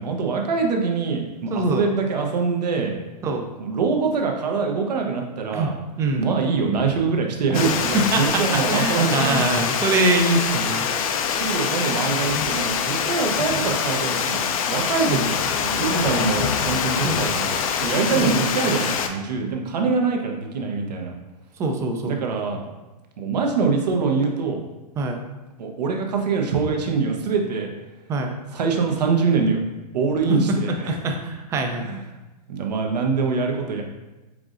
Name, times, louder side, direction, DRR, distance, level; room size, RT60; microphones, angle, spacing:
voice 1, 0.0-2.9 3.6-5.7 6.2-9.5 11.3-21.1 22.1-22.6 23.2-24.6 25.6-27.7 28.5-29.6 29.9-31.0 31.7-32.0 32.5-33.8, right 4 dB, 80° right, 2 dB, 0.9 m, -24 dB
voice 2, 1.5-1.8 3.2-3.4 5.5-5.7 6.0-6.3 7.9-10.9 15.1-15.3 17.0-17.2 18.1-18.4 21.6-22.2 25.0-25.2 28.1-28.3 30.3-31.9, right 2 dB, 15° right, 4 dB, 0.3 m, -23 dB
Water, 7.5-19.1, left 7 dB, 60° left, 0.5 m, -24 dB
4.7 x 3.8 x 2.5 m, 1.1 s
hypercardioid pair, 140°, 21 cm